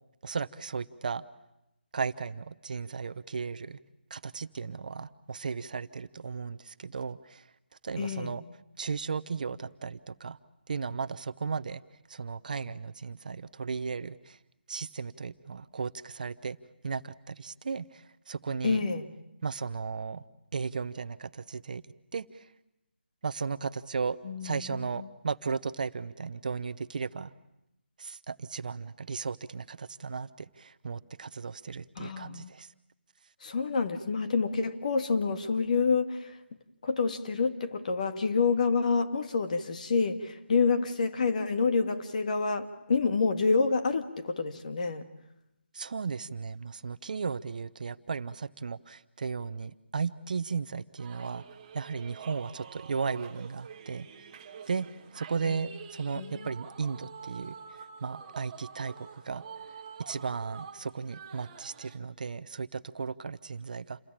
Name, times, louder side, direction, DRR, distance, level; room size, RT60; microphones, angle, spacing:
voice 1, 0.2-1.2 1.9-3.8 4.1-7.5 7.8-8.4 8.8-10.4 10.7-11.8 12.1-14.4 14.7-16.6 16.8-18.9 19.4-20.2 20.5-21.8 22.1-22.5 23.2-27.3 28.0-32.7 45.7-51.4 51.7-54.1 54.7-59.4 60.0-64.0, right 5 dB, 50° right, 0.9 m, -35 dB
voice 2, 8.0-8.3 18.6-19.1 24.2-25.1 32.0-32.5 33.4-36.4 36.8-45.1 55.4-55.6 56.1-56.5, left 4 dB, 45° left, 1.9 m, -28 dB
sound 1, 51.0-62.0, right 6 dB, 25° right, 1.5 m, -47 dB
28.5 x 21.0 x 8.9 m
figure-of-eight pair, 165°, 6 cm